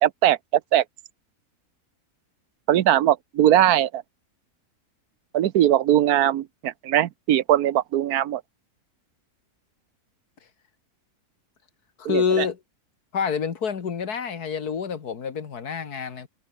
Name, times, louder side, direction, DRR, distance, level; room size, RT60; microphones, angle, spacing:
voice 1, 0.0-0.8 2.7-4.0 5.3-8.4 12.0-12.5, right 12 dB, 80° right, 1.2 m, -20 dB
voice 2, 12.0-12.6 13.1-16.3, left 6 dB, 90° left, 2.3 m, -27 dB
omnidirectional pair, 1.6 m